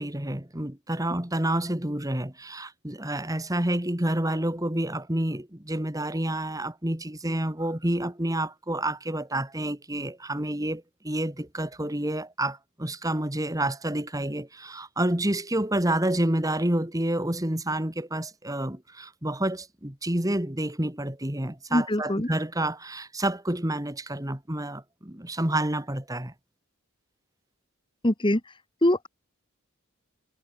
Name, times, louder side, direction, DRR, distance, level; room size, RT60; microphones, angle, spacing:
voice 1, 0.0-26.3, right 1 dB, 15° right, 2.1 m, -29 dB
voice 2, 21.7-22.3 28.0-28.4 28.8-29.1, left 1 dB, 25° left, 1.6 m, -23 dB
head